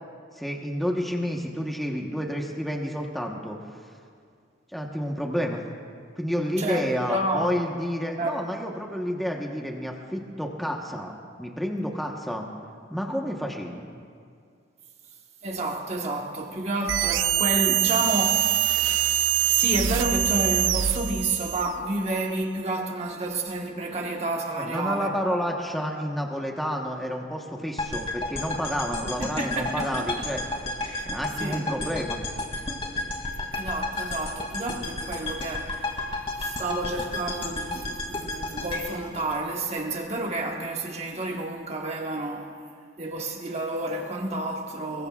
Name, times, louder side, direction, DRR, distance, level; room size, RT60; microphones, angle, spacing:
voice 1, 0.4-3.6 4.7-5.6 6.2-12.5 12.9-13.9 24.6-30.4 31.1-32.2, equal, ahead, 1.1 m, -30 dB
voice 2, 6.6-7.5 8.2-8.4 15.4-19.1 19.5-25.1 29.2-30.3 30.9-31.1 31.4-31.6 33.5-36.0 36.4-42.5 43.0-45.1, right 2 dB, 35° right, 1.3 m, -30 dB
sound 1, 16.9-21.8, right 11 dB, 90° right, 0.5 m, -24 dB
sound 2, 27.8-40.0, left 2 dB, 30° left, 2.5 m, -32 dB
25.5 x 22.5 x 2.4 m
head